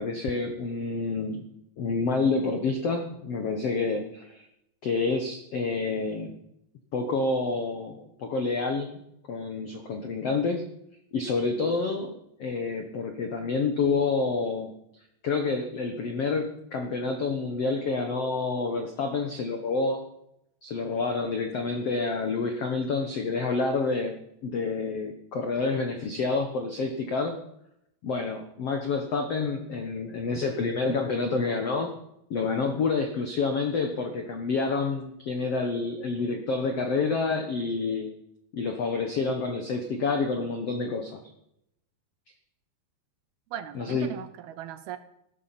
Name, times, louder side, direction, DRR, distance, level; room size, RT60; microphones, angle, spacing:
voice 1, 0.0-1.5 1.8-4.5 4.8-6.3 6.9-9.0 9.3-10.6 11.1-12.1 12.4-14.7 15.2-20.0 20.6-27.3 28.0-31.9 32.3-38.1 38.5-41.2 43.7-44.1, left 4 dB, 80° left, 5 dB, 1.4 m, -28 dB
voice 2, 43.5-45.0, right 11 dB, 75° right, 12 dB, 2.4 m, -38 dB
15.5 x 12.5 x 5.8 m, 0.79 s
omnidirectional pair, 4.9 m